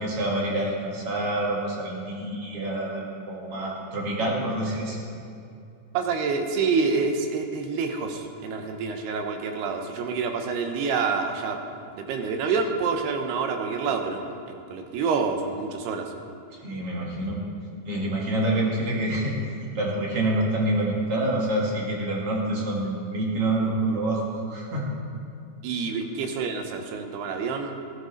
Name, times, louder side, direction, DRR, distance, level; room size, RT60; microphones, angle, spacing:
voice 1, 0.0-5.1 16.6-17.4 17.9-19.4 19.7-24.2 24.5-24.8, right 1 dB, 50° right, -2 dB, 1.9 m, -27 dB
voice 2, 5.9-11.6 12.0-16.1 25.6-27.7, right 5 dB, 75° right, 5 dB, 2.9 m, -27 dB
16.5 x 12.0 x 4.0 m, 2.5 s
omnidirectional pair, 4.9 m